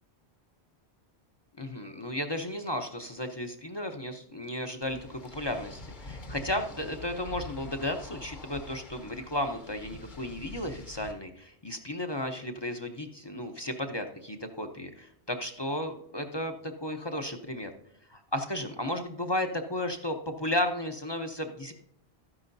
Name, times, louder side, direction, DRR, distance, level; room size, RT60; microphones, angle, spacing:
voice 1, 1.6-17.7 18.1-21.7, left 1 dB, 30° left, 5 dB, 0.6 m, -34 dB
sound 1, 4.8-11.1, left 2 dB, 50° left, 1.1 m, -45 dB
13.0 x 9.7 x 2.6 m, 0.73 s
omnidirectional pair, 1.1 m